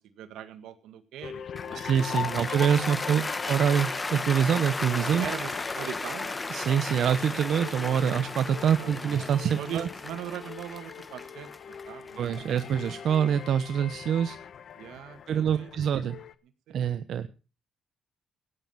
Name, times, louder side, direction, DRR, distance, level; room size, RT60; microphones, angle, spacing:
voice 1, 0.2-1.8 5.1-6.4 8.8-9.2 9.6-11.5 11.9-12.5 14.8-15.7 16.7-17.3, right 10 dB, 85° right, 12 dB, 1.6 m, -41 dB
sound 1, 1.2-16.3, left 8 dB, 60° left, 1.0 m, -41 dB
Cheering / Applause, 1.6-13.8, left 3 dB, 20° left, 1.0 m, -35 dB
voice 2, 1.7-5.3 6.5-9.9 12.2-14.4 15.3-16.2 16.7-17.3, right 8 dB, 70° right, 11 dB, 0.9 m, -25 dB
16.5 x 9.6 x 5.7 m, 0.35 s
cardioid pair, 90°, 0 cm